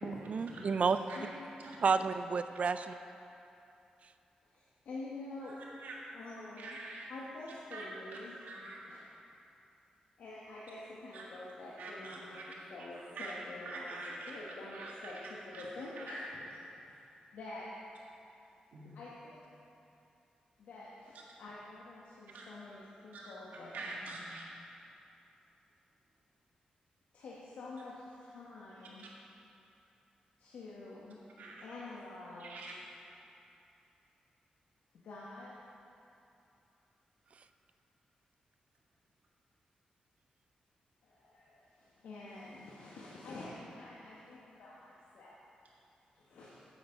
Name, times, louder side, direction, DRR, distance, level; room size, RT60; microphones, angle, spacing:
voice 1, 0.0-1.0 1.8-3.0, right 5 dB, 55° right, 11 dB, 0.4 m, -30 dB
voice 2, 4.5-5.6 6.1-6.8 7.1-8.4 8.9-9.0 10.2-14.0 14.3-16.5 16.9-17.0 17.3-17.7 18.9-19.4 20.6-23.9 27.1-29.0 30.4-31.2 31.6-32.6 35.0-35.5 41.0-45.4 46.1-46.7, left 2 dB, 85° left, -6 dB, 1.3 m, -47 dB
voice 3, 5.4-6.0 6.6-7.1 7.7-7.9 8.4-8.8 11.1-11.2 11.8-12.5 13.1-14.4 14.7-15.6 16.0-16.1 18.7-18.9 22.3-22.8 23.1-23.3 23.7-24.5 29.0-29.1 31.4-31.7 32.4-32.7, right 2 dB, 85° right, -3 dB, 1.7 m, -45 dB
8.4 x 8.1 x 5.3 m, 2.8 s
cardioid pair, 75°, 3 cm